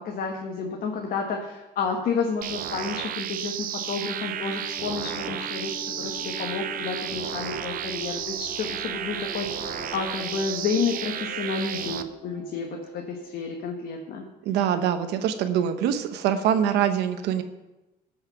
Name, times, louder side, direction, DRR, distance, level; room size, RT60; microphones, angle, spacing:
voice 1, 0.0-12.7 12.9-14.2, left 5 dB, 60° left, 1 dB, 1.4 m, -30 dB
sound 1, 2.4-12.0, right 9 dB, 55° right, 0.8 m, -33 dB
sound 2, 3.5-13.8, left 1 dB, ahead, 2.8 m, -43 dB
voice 2, 14.4-17.4, right 9 dB, 85° right, 8 dB, 0.9 m, -24 dB
15.0 x 5.7 x 5.8 m, 1.0 s
cardioid pair, 110°, 17 cm